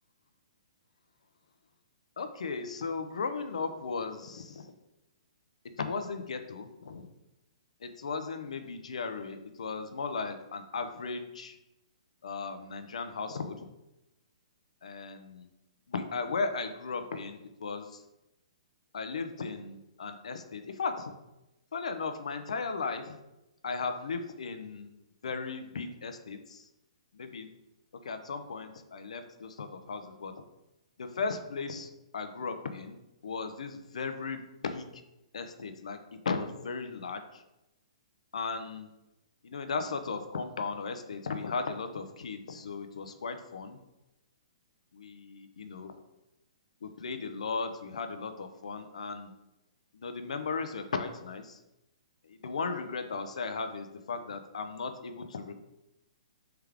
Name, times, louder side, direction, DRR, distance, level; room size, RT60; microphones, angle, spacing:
voice 1, 2.2-4.7 5.8-7.1 7.8-11.6 12.2-13.7 14.8-15.5 15.9-18.0 18.9-21.1 21.7-23.1 23.6-24.9 25.2-26.7 27.1-27.5 28.0-30.3 31.0-34.9 35.3-36.0 36.2-37.4 38.3-38.9 39.4-43.8 44.9-45.9 46.8-49.3 49.9-51.6 52.3-55.6, left 4 dB, 80° left, 8 dB, 0.5 m, -36 dB
3.4 x 3.4 x 3.4 m, 0.93 s
hypercardioid pair, 150°, 3 cm